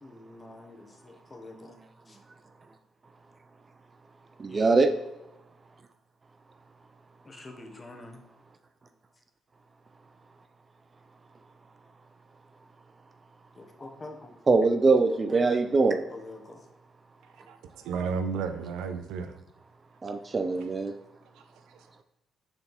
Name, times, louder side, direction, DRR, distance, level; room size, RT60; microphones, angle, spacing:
voice 1, 0.0-1.8 2.1-2.2 4.5-4.8 7.2-8.2 13.6-14.4 16.1-16.6, left 2 dB, 25° left, 1.2 m, -45 dB
voice 2, 4.4-4.9 14.5-16.1 20.0-20.9, right 3 dB, 30° right, 0.5 m, -23 dB
voice 3, 17.5-19.4 21.4-22.0, right 5 dB, 85° right, 0.6 m, -34 dB
6.5 x 4.4 x 4.4 m
cardioid pair, 85°, 0 cm